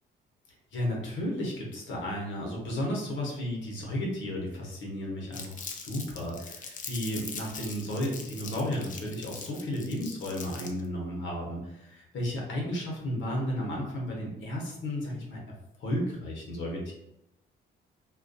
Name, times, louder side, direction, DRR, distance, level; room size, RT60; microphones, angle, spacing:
voice 1, 0.7-15.4 15.8-16.9, left 1 dB, 70° left, -2 dB, 0.8 m, -33 dB
Crumpling crinkling, 5.3-10.9, left 5 dB, 40° left, 0.4 m, -42 dB
2.3 x 2.2 x 2.6 m, 0.85 s
cardioid pair, 90°, 20 cm